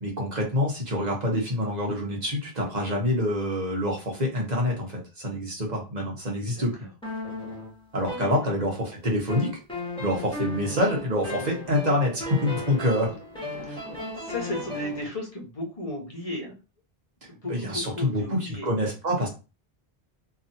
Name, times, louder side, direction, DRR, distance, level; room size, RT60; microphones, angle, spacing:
voice 1, 0.0-6.7 7.9-8.7 9.0-9.5 10.0-13.1 13.7-13.8 17.5-19.3, left 1 dB, 45° right, -1 dB, 1.2 m, -26 dB
voice 2, 6.5-6.9 14.1-16.6 17.3-18.7, left 1 dB, 35° left, 0 dB, 1.1 m, -35 dB
sound 1, 7.0-8.9 9.3-15.1, left 1 dB, 5° left, 1.2 m, -35 dB
3.0 x 2.7 x 2.7 m, 0.30 s
omnidirectional pair, 1.0 m